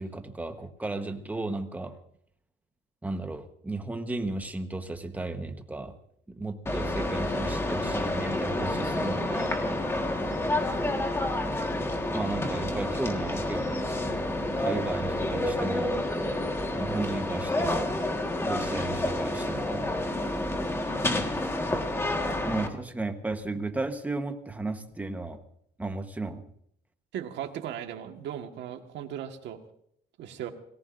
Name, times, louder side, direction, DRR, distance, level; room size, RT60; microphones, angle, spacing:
voice 1, 0.0-2.0 3.0-5.9 6.4-9.6 12.1-14.2 14.6-16.0 16.8-18.0 18.4-19.8 22.4-25.4 25.8-26.4, right 2 dB, 10° right, 7 dB, 1.1 m, -34 dB
sound 1, 6.7-22.7, left 1 dB, 15° left, 1.6 m, -29 dB
voice 2, 27.1-29.6 30.2-30.5, right 10 dB, 80° right, 5 dB, 1.6 m, -37 dB
28.5 x 19.0 x 2.6 m, 0.70 s
cardioid pair, 170°, 18 cm